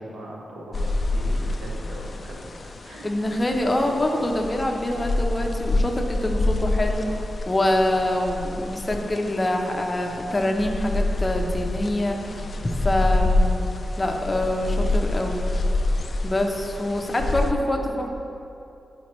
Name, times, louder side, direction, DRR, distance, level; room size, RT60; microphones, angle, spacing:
voice 1, 0.0-3.1 12.3-12.6, right 1 dB, 90° right, -3 dB, 1.1 m, -40 dB
sound 1, 0.7-17.5, left 2 dB, 45° left, 0.3 m, -27 dB
voice 2, 3.0-12.5 12.8-13.6 14.0-15.5 16.2-18.1, left 1 dB, 25° left, 2 dB, 0.8 m, -25 dB
10.0 x 5.1 x 3.1 m, 2.8 s
wide cardioid pair, 100°, 0 cm